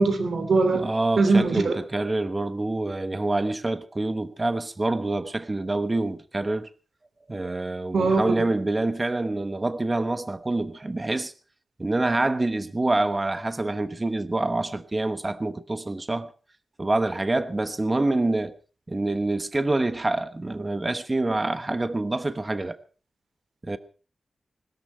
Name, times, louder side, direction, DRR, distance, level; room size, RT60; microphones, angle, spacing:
voice 1, 0.0-0.8 1.2-1.8 7.9-8.5, right 3 dB, 70° right, 3.0 m, -21 dB
voice 2, 0.7-6.7 7.3-11.3 11.8-16.3 16.8-18.5 18.9-22.8 23.6-23.8, right 2 dB, 20° right, 1.0 m, -26 dB
21.0 x 13.0 x 4.4 m
wide cardioid pair, 165°, 0 cm